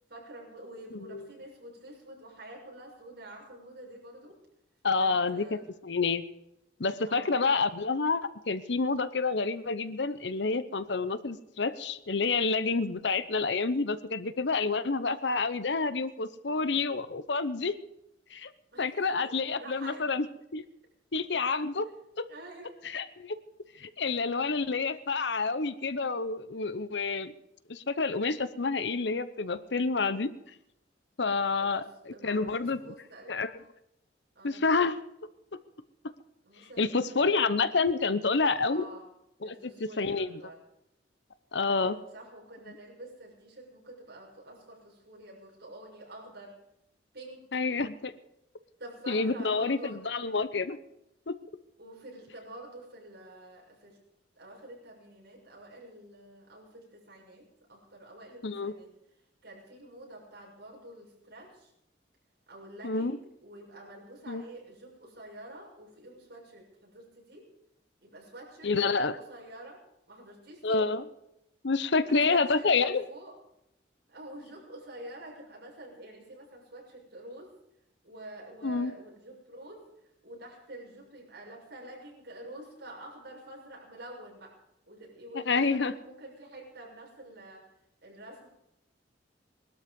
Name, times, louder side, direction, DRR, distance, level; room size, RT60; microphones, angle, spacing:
voice 1, 0.1-4.4 4.9-5.6 7.0-7.4 18.7-20.0 22.3-22.8 31.6-33.4 34.3-34.6 36.4-37.2 38.6-39.1 39.4-40.6 41.7-46.6 47.1-47.4 48.8-50.2 51.8-54.0 54.3-58.9 59.4-61.7 62.5-67.5 68.0-69.8 70.1-70.9 71.9-73.4 74.1-77.5 78.0-84.5 84.9-87.7 88.0-88.5, right 1 dB, 60° right, -2 dB, 6.8 m, -48 dB
voice 2, 0.9-1.3 4.8-6.2 6.8-17.8 18.3-18.5 18.8-20.3 20.5-20.6 21.1-22.3 22.8-23.4 23.8-27.3 27.7-30.3 31.2-32.8 33.3-33.5 34.4-35.0 36.8-38.9 39.4-39.5 39.8-40.4 41.5-42.0 47.5-48.1 49.1-50.8 51.3-51.4 58.4-58.7 62.8-63.2 64.3-64.4 68.6-69.2 70.6-71.0 71.6-73.0 78.6-78.9 85.5-85.9, left 4 dB, 70° left, 13 dB, 0.9 m, -28 dB
20.0 x 12.5 x 5.3 m, 0.82 s
head